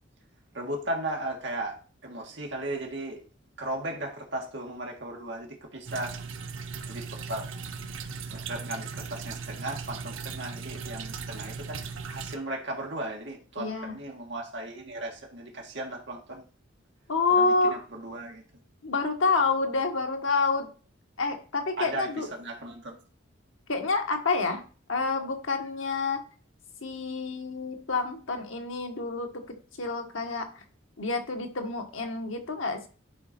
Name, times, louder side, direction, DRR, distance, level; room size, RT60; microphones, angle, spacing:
voice 1, 0.5-1.8 2.0-3.2 3.6-6.2 6.9-7.5 8.3-11.8 12.1-16.4 17.3-18.4 21.8-22.9, right 1 dB, 60° right, 1 dB, 1.7 m, -36 dB
sound 1, 5.9-12.3, right 5 dB, 85° right, 0.8 m, -38 dB
voice 2, 13.6-13.9 17.1-17.8 18.8-20.7 21.2-22.3 23.7-24.6 24.9-26.2 26.8-29.4 29.8-30.5 31.0-32.9, left 4 dB, 85° left, 4 dB, 1.4 m, -28 dB
10.5 x 4.1 x 4.3 m, 0.38 s
head